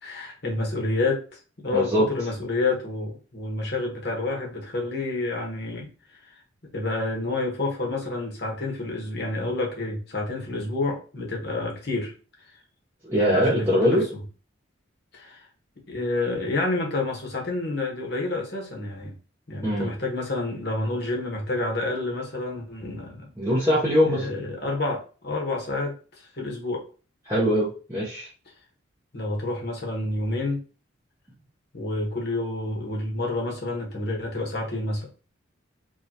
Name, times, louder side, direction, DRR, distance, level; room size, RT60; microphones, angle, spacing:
voice 1, 0.0-5.9 6.7-12.1 13.3-14.0 15.1-15.5 15.9-19.1 19.5-23.3 24.1-25.9 26.3-26.8 29.1-30.6 31.7-35.1, left 2 dB, 55° left, 1.2 m, -29 dB
voice 2, 1.7-2.1 13.0-14.0 19.6-19.9 23.4-24.3 27.3-28.3, equal, 15° right, 0.9 m, -22 dB
4.8 x 2.6 x 2.8 m
head